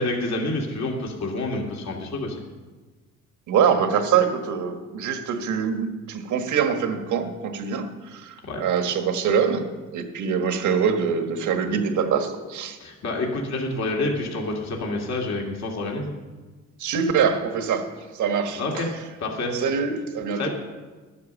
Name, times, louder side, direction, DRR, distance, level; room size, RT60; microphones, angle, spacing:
voice 1, 0.0-2.4 8.5-8.6 12.8-16.1 18.6-18.9 19.2-19.6 20.3-20.5, left 2 dB, 60° left, 0 dB, 2.4 m, -28 dB
voice 2, 3.5-12.8 16.8-18.9 19.5-20.5, right 7 dB, 75° right, 6 dB, 1.4 m, -24 dB
11.5 x 9.7 x 7.0 m, 1.3 s
cardioid pair, 90°, 30 cm